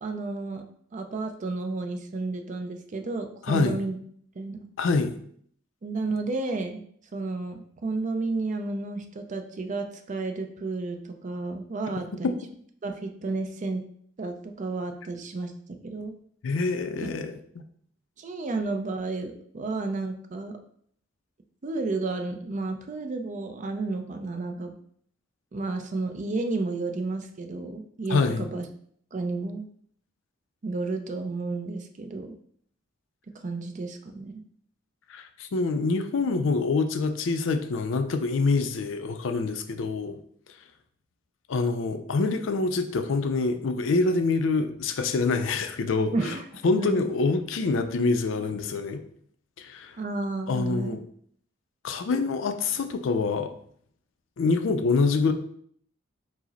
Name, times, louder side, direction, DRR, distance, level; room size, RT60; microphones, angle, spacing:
voice 1, 0.0-0.6 0.9-4.0 4.4-4.6 5.8-6.8 7.1-12.3 12.8-13.8 14.2-16.2 17.0-17.1 18.2-20.5 21.6-24.7 25.5-28.7 29.1-29.7 30.6-32.4 33.4-34.4 46.1-46.4 46.8-47.1 50.0-51.0, right 3 dB, 40° right, 6 dB, 0.4 m, -32 dB
voice 2, 3.5-3.8 4.8-5.1 12.2-12.3 16.4-17.3 28.1-28.5 35.1-40.2 41.5-46.3 46.6-49.0 49.6-49.9 50.5-51.0 51.8-53.5 54.4-55.3, left 3 dB, 70° left, 8 dB, 0.4 m, -25 dB
4.8 x 2.0 x 4.0 m, 0.62 s
head